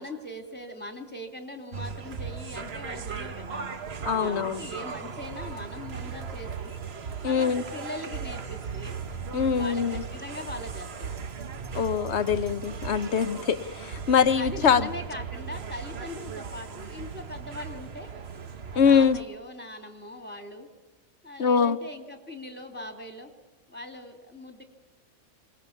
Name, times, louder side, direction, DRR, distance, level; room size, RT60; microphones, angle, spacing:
voice 1, 0.0-3.7 4.2-6.8 7.2-9.0 9.5-11.1 14.3-18.1 18.7-20.7 21.2-23.3 23.7-24.6, left 1 dB, 5° left, 5 dB, 2.6 m, -40 dB
sound 1, 1.7-19.2, right 6 dB, 50° right, 1.3 m, -37 dB
voice 2, 4.1-4.6 7.2-7.6 9.3-10.0 11.7-14.9 18.7-19.2 21.4-21.8, left 7 dB, 55° left, 12 dB, 1.2 m, -23 dB
26.0 x 20.0 x 7.2 m, 1.2 s
omnidirectional pair, 1.5 m